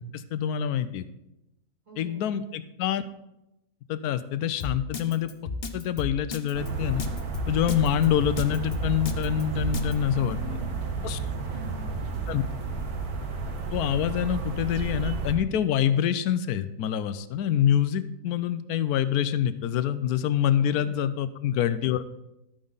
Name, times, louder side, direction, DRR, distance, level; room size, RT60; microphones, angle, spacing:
voice 1, 0.1-1.0 2.0-3.0 3.9-5.3 5.7-7.0 7.5-10.4 11.0-11.2 12.3-12.4 13.7-22.0, left 9 dB, 90° left, 13 dB, 1.1 m, -26 dB
voice 2, 1.9-2.3 10.1-12.4 20.6-21.0, right 1 dB, 55° right, -3 dB, 3.0 m, -44 dB
Drum kit, 4.6-9.9, left 4 dB, 45° left, 0.9 m, -33 dB
sound 1, 6.5-15.3, right 4 dB, 80° right, 1.7 m, -32 dB
12.5 x 8.8 x 4.0 m, 0.90 s
omnidirectional pair, 1.6 m